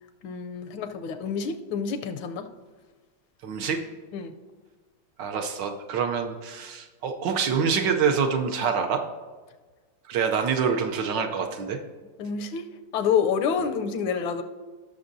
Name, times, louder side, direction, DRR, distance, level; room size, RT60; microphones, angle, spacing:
voice 1, 0.2-2.5 4.1-4.3 12.2-12.7 12.9-14.4, left 6 dB, 80° left, 8 dB, 1.4 m, -28 dB
voice 2, 3.4-3.8 5.2-9.0 10.1-11.8, right 6 dB, 70° right, 5 dB, 1.2 m, -26 dB
17.0 x 6.3 x 2.6 m, 1.3 s
omnidirectional pair, 2.2 m